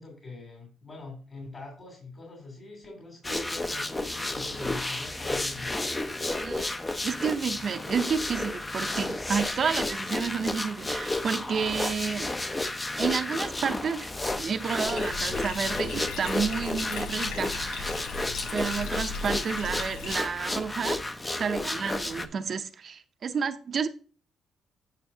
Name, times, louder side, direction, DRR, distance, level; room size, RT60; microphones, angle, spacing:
voice 1, 0.0-5.7, left 3 dB, 40° left, 2.9 m, -43 dB
sound 1, 3.2-22.3, left 2 dB, 20° left, 0.6 m, -32 dB
voice 2, 7.0-12.3 13.0-14.1 14.4-17.9 18.5-21.0 21.4-23.9, right 6 dB, 50° right, 0.6 m, -30 dB
Bathtub (filling or washing), 14.9-20.2, left 5 dB, 80° left, 0.6 m, -37 dB
9.4 x 5.7 x 2.7 m
cardioid pair, 90°, 0 cm